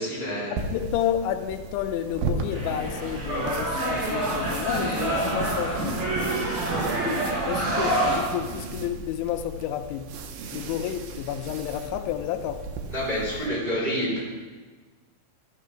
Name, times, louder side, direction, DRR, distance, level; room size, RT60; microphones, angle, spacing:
voice 1, 0.0-0.5 12.9-14.2, equal, 10° right, -7 dB, 2.9 m, -28 dB
sound 1, 0.6-13.5, right 4 dB, 85° right, 2.0 m, -36 dB
voice 2, 0.7-6.0 6.7-10.1 10.5-12.6, left 11 dB, 85° left, 8 dB, 3.0 m, -31 dB
sound 2, 2.5-8.2, right 1 dB, 60° right, 5.2 m, -27 dB
12.5 x 6.6 x 5.6 m, 1.4 s
omnidirectional pair, 5.2 m